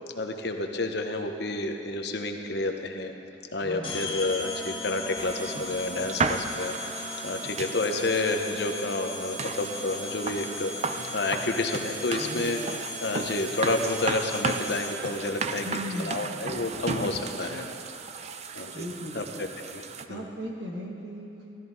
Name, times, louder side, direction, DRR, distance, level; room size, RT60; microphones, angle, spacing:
voice 1, 0.2-3.1 3.5-6.8 7.2-10.7 11.1-12.6 13.0-17.7 18.5-18.7 19.1-19.2 19.6-19.8 20.1-20.3, left 2 dB, 65° left, 4 dB, 1.0 m, -30 dB
voice 2, 3.6-4.1 12.1-12.8 15.6-16.7 18.7-19.5 20.1-21.3, equal, 70° right, -1 dB, 1.9 m, -38 dB
sound 1, 3.8-15.2, left 3 dB, 30° left, 1.6 m, -38 dB
sound 2, 5.2-20.1, right 4 dB, 35° right, 0.5 m, -35 dB
16.0 x 13.0 x 4.1 m, 2.8 s
head